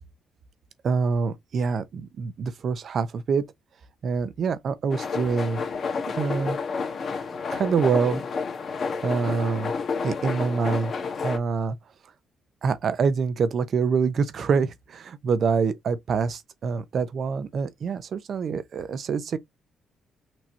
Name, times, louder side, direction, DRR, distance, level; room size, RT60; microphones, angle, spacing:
voice 1, 0.8-3.5 4.0-5.6 6.1-6.6 7.5-8.2 9.0-9.7 10.0-10.9 11.2-11.8 12.6-19.4, right 5 dB, 55° right, 0.8 m, -25 dB
sound 1, 4.9-11.4, left 5 dB, 50° left, 1.3 m, -30 dB
6.1 x 3.0 x 2.8 m
cardioid pair, 90°, 0 cm